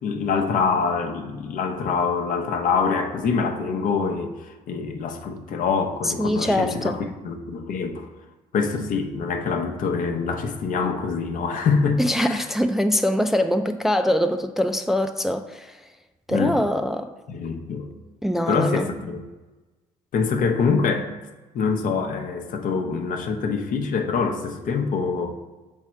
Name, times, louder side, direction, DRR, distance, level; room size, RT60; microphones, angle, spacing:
voice 1, 0.0-8.1 8.5-12.4 16.3-16.6 17.3-17.9 18.5-19.2 20.1-21.1 21.5-25.3, left 5 dB, 65° left, 5 dB, 0.8 m, -25 dB
voice 2, 6.0-7.0 12.0-15.8 16.3-17.1 18.2-18.9, equal, ahead, 7 dB, 0.4 m, -23 dB
6.2 x 3.6 x 4.3 m, 1.2 s
supercardioid pair, 70°, 15 cm